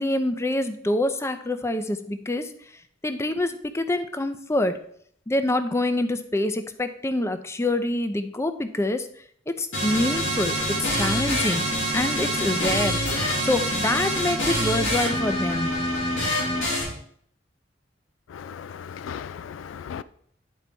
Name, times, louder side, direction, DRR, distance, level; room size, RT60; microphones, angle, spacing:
voice 1, 0.0-2.5 3.0-4.8 5.3-9.1 9.5-11.6 11.9-13.0 13.4-15.7, left 1 dB, 15° left, 0.5 m, -26 dB
sound 1, 9.7-16.8, equal, 90° left, 3.6 m, -25 dB
voice 2, 18.3-20.0, left 7 dB, 70° left, 0.3 m, -37 dB
10.0 x 4.0 x 4.5 m
head